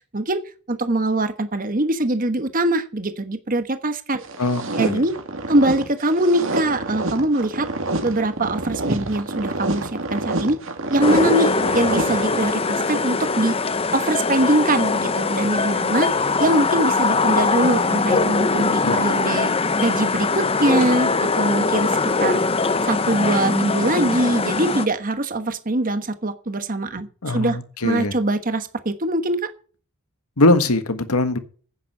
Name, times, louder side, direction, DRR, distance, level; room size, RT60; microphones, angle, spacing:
voice 1, 0.7-4.2 4.8-5.1 5.5-7.7 8.0-10.6 10.9-13.5 13.9-16.1 16.4-19.5 19.8-22.4 22.8-27.6 27.8-29.5, right 1 dB, 40° right, 1.2 m, -22 dB
sound 1, 4.2-12.8, right 2 dB, 60° right, 2.3 m, -28 dB
voice 2, 4.4-5.1 18.8-18.9 27.2-28.1 30.4-31.4, left 2 dB, 85° left, 1.6 m, -21 dB
sound 2, 11.0-24.9, left 4 dB, 25° left, 0.7 m, -21 dB
10.0 x 9.3 x 6.5 m
head